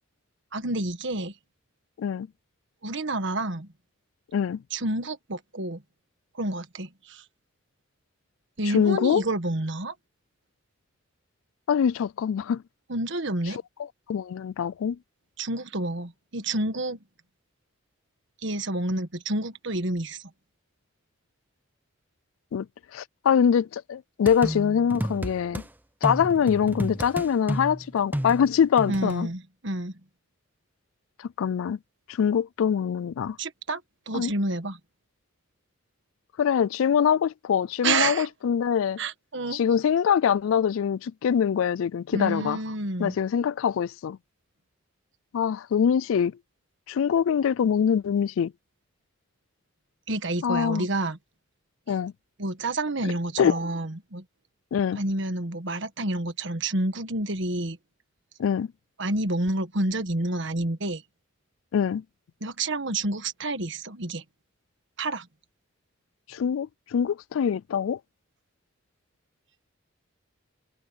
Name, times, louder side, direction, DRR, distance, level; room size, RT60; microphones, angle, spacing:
voice 1, 0.5-1.3 2.8-3.7 4.7-5.8 6.3-7.2 8.6-9.9 12.9-13.6 15.4-17.0 18.4-20.2 28.9-29.9 33.4-33.8 34.1-34.8 37.8-38.3 39.0-39.6 42.1-43.1 50.1-51.2 52.4-54.2 55.0-57.8 59.0-61.0 62.4-64.2 65.0-65.3, right 2 dB, 60° right, 1.5 m, -29 dB
voice 2, 8.7-9.2 11.7-12.6 14.1-15.0 22.5-22.7 22.9-25.6 26.0-29.3 31.4-31.8 32.1-33.4 34.1-34.3 36.4-39.0 39.5-42.6 43.0-44.2 45.3-46.3 46.9-48.5 50.4-50.9 51.9-52.1 53.4-53.6 54.7-55.0 58.4-58.7 61.7-62.0 66.3-68.0, left 7 dB, 75° left, 0.3 m, -24 dB
sound 1, 24.3-25.7 26.0-29.2, equal, 10° right, 0.8 m, -32 dB
head